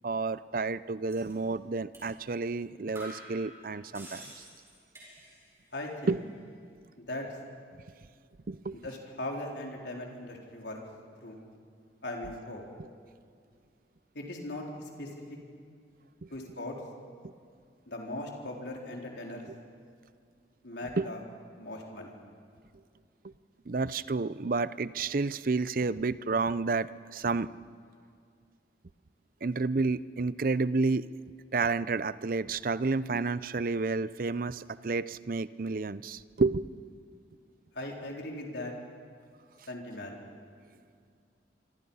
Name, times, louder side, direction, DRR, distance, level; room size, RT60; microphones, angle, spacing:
voice 1, 0.0-4.4 6.1-6.2 8.5-8.8 16.2-16.3 21.0-21.1 23.7-27.5 29.4-31.1 31.5-36.7, right 3 dB, 50° right, 16 dB, 0.6 m, -30 dB
sound 1, 1.1-1.3 1.9-2.1 2.5-2.6 2.9-5.6 5.9-6.4, right 1 dB, 15° right, 7.0 m, -49 dB
voice 2, 5.7-6.2 7.0-7.3 8.8-10.8 11.2-11.4 12.0-12.6 14.1-15.1 16.3-16.8 17.9-19.5 20.6-21.2 21.6-22.2 37.7-38.7 39.7-40.2, left 1 dB, 75° left, 0 dB, 4.1 m, -39 dB
26.5 x 25.5 x 5.6 m, 2.2 s
head